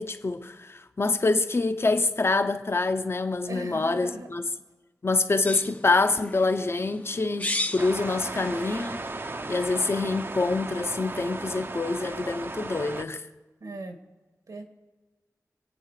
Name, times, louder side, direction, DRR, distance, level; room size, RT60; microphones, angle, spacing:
voice 1, 0.0-4.4 5.0-9.0 9.5-13.3, left 3 dB, 45° left, 0.9 m, -26 dB
voice 2, 3.5-4.3 13.6-14.0 14.5-14.7, right 2 dB, 85° right, 2.0 m, -38 dB
sound 1, 5.5-9.9, left 2 dB, 25° left, 0.7 m, -36 dB
sound 2, 7.8-13.0, right 2 dB, 40° right, 0.7 m, -36 dB
25.5 x 9.1 x 5.0 m
wide cardioid pair, 90°, 6 cm